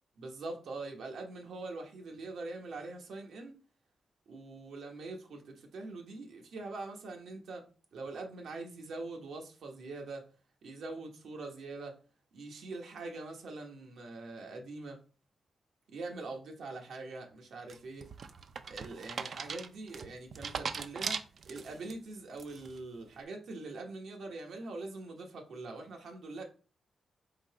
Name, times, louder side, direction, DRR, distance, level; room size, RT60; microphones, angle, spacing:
voice 1, 0.2-3.6 4.3-7.6 7.9-10.3 10.6-12.0 12.3-15.0 15.9-18.1 18.7-26.4, right 3 dB, 85° right, 1.0 m, -43 dB
sound 1, 17.7-21.9 22.4-22.8, right 5 dB, 60° right, 0.4 m, -39 dB
3.9 x 2.7 x 4.6 m
cardioid pair, 110°, 0 cm